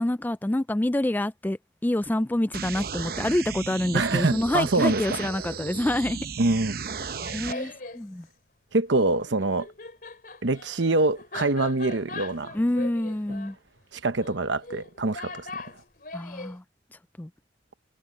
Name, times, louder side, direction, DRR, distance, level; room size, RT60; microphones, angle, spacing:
voice 1, 0.0-6.2 7.3-8.3 12.5-13.6 16.1-16.6 17.2-17.3, left 1 dB, 10° left, 0.3 m, -27 dB
sound 1, 2.5-7.5, right 5 dB, 55° right, 0.8 m, -35 dB
voice 2, 3.9-5.0 6.4-6.8 7.3-7.7 8.7-9.7 10.4-12.6 13.9-15.5, right 2 dB, 75° right, 1.0 m, -25 dB
Laughter, 7.0-8.0 9.3-16.6, left 3 dB, 50° left, 3.7 m, -40 dB
head